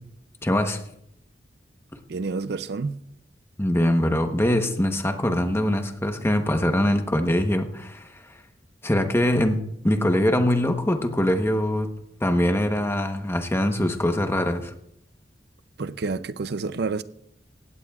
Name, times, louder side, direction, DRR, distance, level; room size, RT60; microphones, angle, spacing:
voice 1, 0.4-0.8 3.6-8.2 8.8-9.6 9.8-11.9 12.2-14.7, left 1 dB, 15° left, 1.0 m, -23 dB
voice 2, 2.1-3.0 15.8-17.0, right 4 dB, 60° right, 0.5 m, -29 dB
18.0 x 16.0 x 2.4 m
head